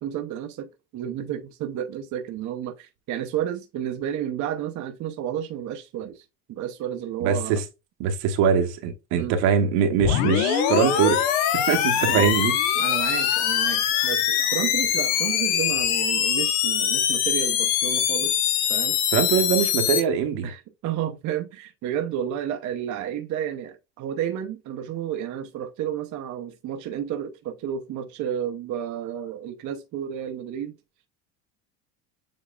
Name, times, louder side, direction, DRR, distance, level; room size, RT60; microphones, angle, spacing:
voice 1, 0.0-7.6 9.1-9.3 12.1-12.3 12.8-18.4 18.7-19.0 20.4-30.8, right 10 dB, 40° right, 0.7 m, -31 dB
voice 2, 7.2-7.6 8.0-11.2 11.5-12.5 19.1-20.5, right 7 dB, 70° right, 1.1 m, -22 dB
sound 1, 10.0-20.0, left 10 dB, 75° left, 1.0 m, -23 dB
7.2 x 2.8 x 2.3 m
supercardioid pair, 110°, 46 cm